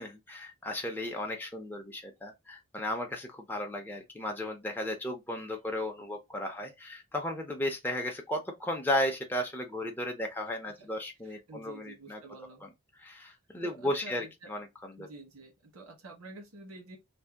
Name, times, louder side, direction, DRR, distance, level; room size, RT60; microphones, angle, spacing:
voice 1, 0.0-12.2 13.0-15.1, left 1 dB, 10° left, 0.5 m, -35 dB
voice 2, 11.2-12.6 13.6-14.6 15.0-17.0, right 3 dB, 85° right, 1.0 m, -49 dB
2.6 x 2.1 x 3.3 m
head